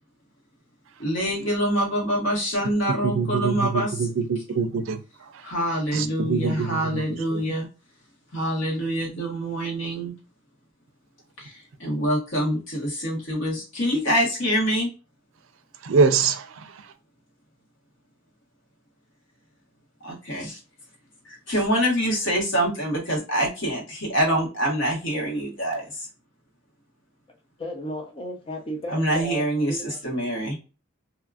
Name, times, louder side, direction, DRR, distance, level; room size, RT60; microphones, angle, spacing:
voice 1, 1.0-4.0 5.4-7.7 8.3-10.1 11.4-14.9 20.0-20.6 21.3-26.1 28.9-30.6, equal, 65° left, -2 dB, 1.4 m, -25 dB
voice 2, 3.0-5.0 5.9-7.0 7.3-7.4 15.8-16.7, right 5 dB, 80° right, 11 dB, 0.4 m, -24 dB
voice 3, 27.6-30.0, equal, 25° left, 2 dB, 0.4 m, -34 dB
2.8 x 2.5 x 2.3 m, 0.32 s
head